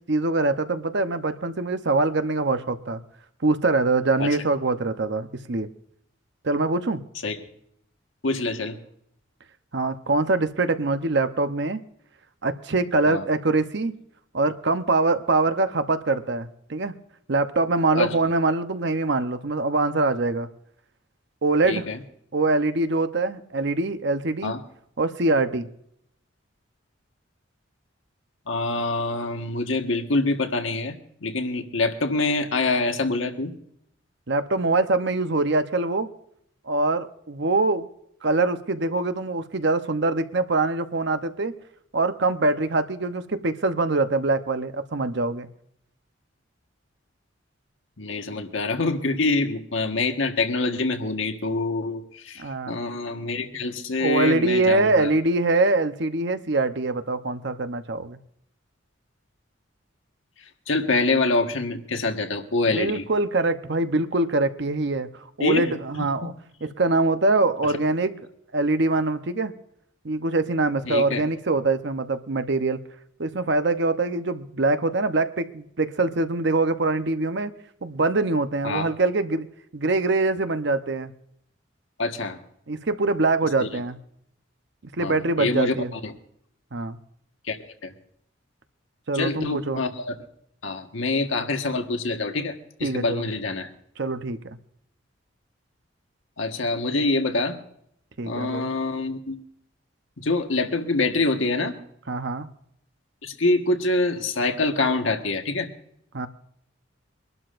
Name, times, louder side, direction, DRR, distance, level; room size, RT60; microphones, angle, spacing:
voice 1, 0.1-3.0 3.4-5.7 6.4-7.0 9.7-11.8 12.4-13.9 14.3-16.9 17.3-20.5 21.4-21.9 22.3-24.5 25.0-25.7 34.3-36.1 36.7-37.9 38.2-41.5 41.9-45.5 52.4-52.8 54.0-58.2 62.7-66.3 66.6-68.3 68.5-69.5 70.0-72.8 73.2-77.5 77.8-79.5 79.7-81.1 82.7-84.0 85.0-85.9 86.7-87.0 89.1-89.8 92.8-93.3 94.0-94.6 98.2-98.7 102.1-102.5 106.1-106.3, right 3 dB, 60° right, 9 dB, 0.8 m, -24 dB
voice 2, 8.2-8.8 13.1-13.2 17.9-18.1 21.7-22.0 24.4-24.6 28.5-33.5 48.0-55.1 60.7-63.0 65.4-66.3 70.9-71.2 78.6-78.9 82.0-82.4 83.6-83.7 85.0-86.1 87.5-87.6 87.8-87.9 89.1-90.1 90.6-93.7 96.4-97.6 98.2-99.4 100.2-101.7 103.2-105.7, left 3 dB, 85° left, 5 dB, 1.5 m, -25 dB
24.5 x 12.0 x 2.6 m, 0.72 s
head